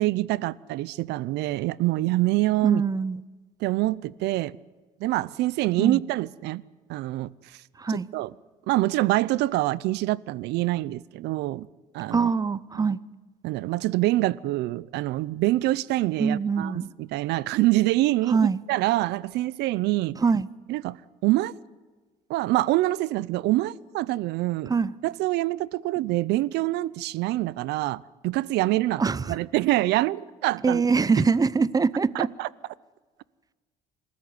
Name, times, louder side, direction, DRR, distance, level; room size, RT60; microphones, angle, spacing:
voice 1, 0.0-2.8 3.6-4.6 5.0-6.6 6.9-7.3 7.9-8.3 8.7-11.7 11.9-12.3 12.7-12.9 13.4-20.2 20.7-21.5 22.3-24.7 25.0-29.0 29.3-30.8 32.1-32.5, right 17 dB, 85° right, 0.6 m, -25 dB
voice 2, 2.6-3.2 5.8-6.0 7.8-8.1 12.1-13.0 16.2-16.9 18.3-18.6 20.2-20.5 24.7-24.9 29.0-29.4 30.6-32.3, right 5 dB, 20° right, 0.7 m, -23 dB
27.0 x 14.0 x 9.6 m
cardioid pair, 110°, 17 cm